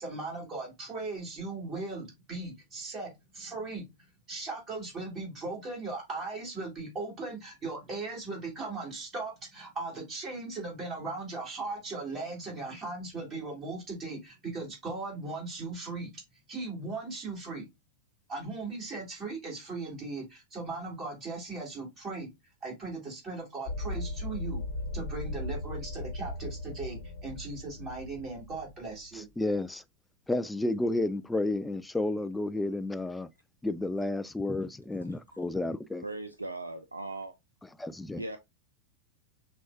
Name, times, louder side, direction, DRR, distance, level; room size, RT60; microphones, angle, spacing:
voice 1, 0.0-3.9 4.3-16.1 16.5-17.7 18.3-22.3 22.6-24.6 24.9-29.3, right 3 dB, 30° right, 2.6 m, -38 dB
sound 1, 23.7-29.1, left 2 dB, 60° left, 1.0 m, -37 dB
voice 2, 29.4-29.8 30.3-33.3 33.6-36.0 37.8-38.2, left 2 dB, 5° left, 0.3 m, -31 dB
voice 3, 35.0-35.4 36.0-37.3 38.2-38.4, right 2 dB, 85° right, 0.4 m, -39 dB
6.1 x 2.3 x 2.7 m
figure-of-eight pair, 90°, 0 cm